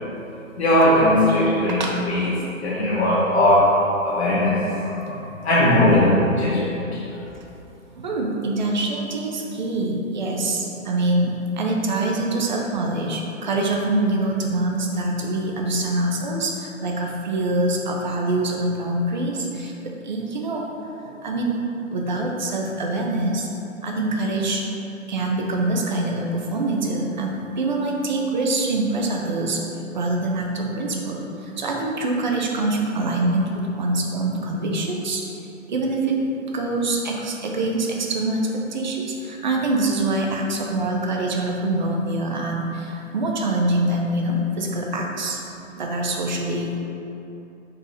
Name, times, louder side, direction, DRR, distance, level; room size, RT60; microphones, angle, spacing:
voice 1, 0.6-1.8 2.1-2.3 2.6-3.8 4.0-5.2 5.4-6.8, left 1 dB, 50° left, -7 dB, 1.0 m, -18 dB
voice 2, 5.0-5.4 8.0-20.6 21.0-21.6 21.9-23.5 23.8-24.6 25.1-29.6 29.9-35.2 35.7-36.1 36.5-38.4 38.7-45.4 45.8-46.7, right 2 dB, 35° right, 0 dB, 0.5 m, -24 dB
4.6 x 3.7 x 3.1 m, 2.8 s
figure-of-eight pair, 130°, 40 cm